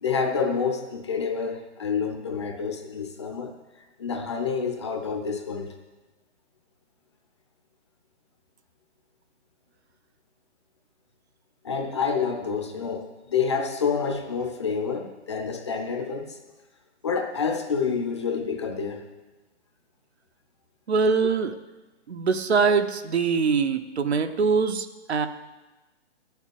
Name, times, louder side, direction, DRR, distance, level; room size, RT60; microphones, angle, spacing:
voice 1, 0.0-3.5 4.0-5.7 11.6-16.4 17.0-19.1, left 5 dB, 25° left, 4 dB, 0.7 m, -28 dB
voice 2, 20.9-21.5 22.1-25.3, right 5 dB, 65° right, 8 dB, 1.0 m, -23 dB
10.5 x 7.1 x 9.4 m, 1.2 s
hypercardioid pair, 170°, 35 cm